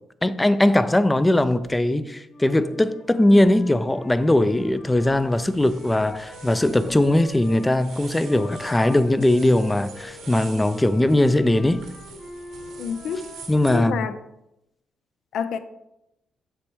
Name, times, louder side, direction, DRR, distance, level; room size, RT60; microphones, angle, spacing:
voice 1, 0.2-11.8 13.5-14.0, left 1 dB, 10° left, 0.4 m, -20 dB
sound 1, 1.4-1.8 3.4-3.6 4.3-4.9 5.8-6.0 6.9-7.0 8.0-8.8, right 4 dB, 85° right, 1.2 m, -47 dB
Wind instrument woodwind instrument, 2.3-7.7 8.2-14.1, left 1 dB, 35° left, 2.4 m, -43 dB
sound 2, 5.0-13.8, right 6 dB, 70° right, 0.9 m, -45 dB
voice 2, 12.8-13.3 13.7-14.1 15.3-15.6, left 7 dB, 75° left, 0.5 m, -27 dB
7.7 x 3.2 x 4.5 m
cardioid pair, 90°, 0 cm